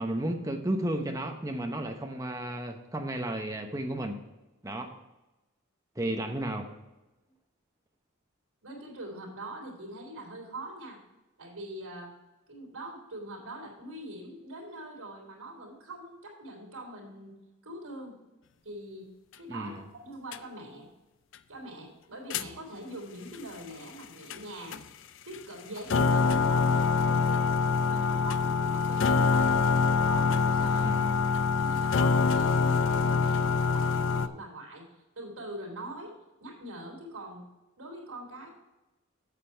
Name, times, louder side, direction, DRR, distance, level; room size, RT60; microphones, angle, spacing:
voice 1, 0.0-4.2 4.6-5.0 6.0-6.7 19.5-19.8 30.8-31.1, right 1 dB, 15° right, 4 dB, 0.9 m, -33 dB
voice 2, 8.6-11.0 11.4-12.1 12.5-17.3 17.6-18.2 18.6-19.1 19.4-20.9 21.5-24.8 25.3-27.4 27.8-29.5 29.9-30.9 31.6-34.9 35.2-36.1 36.4-37.4 37.8-38.5, right 1 dB, 75° right, -1 dB, 3.5 m, -43 dB
sound 1, 20.3-20.4 22.3-22.5 24.3-24.4 24.7-24.8 25.3-25.4 25.8-34.3, left 5 dB, 55° left, 0.4 m, -25 dB
8.4 x 7.5 x 4.5 m, 1.0 s
head